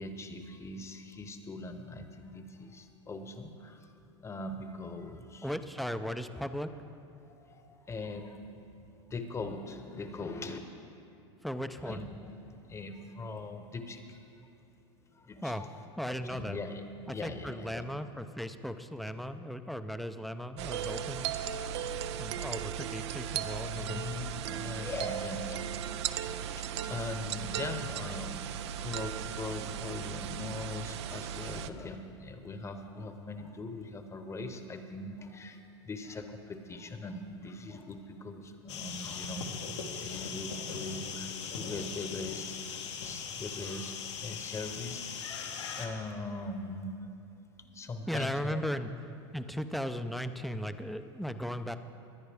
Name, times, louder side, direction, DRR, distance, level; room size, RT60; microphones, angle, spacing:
voice 1, 0.0-3.9 4.2-5.5 7.3-8.7 9.0-10.6 11.8-14.2 15.1-15.7 16.1-16.8 17.1-17.8 23.7-25.7 26.5-35.6 35.8-45.4 45.8-47.1 47.7-48.6, left 2 dB, 20° left, 7 dB, 0.9 m, -41 dB
voice 2, 5.4-6.7 11.4-12.1 15.4-15.6 16.0-16.6 17.1-21.3 22.2-24.0 48.1-51.8, equal, ahead, 9 dB, 0.5 m, -37 dB
sound 1, 20.6-31.7, right 9 dB, 75° right, 0.5 m, -37 dB
sound 2, 38.7-45.9, left 6 dB, 85° left, 1.3 m, -40 dB
21.5 x 9.4 x 3.5 m, 2.7 s
hypercardioid pair, 115°, 14 cm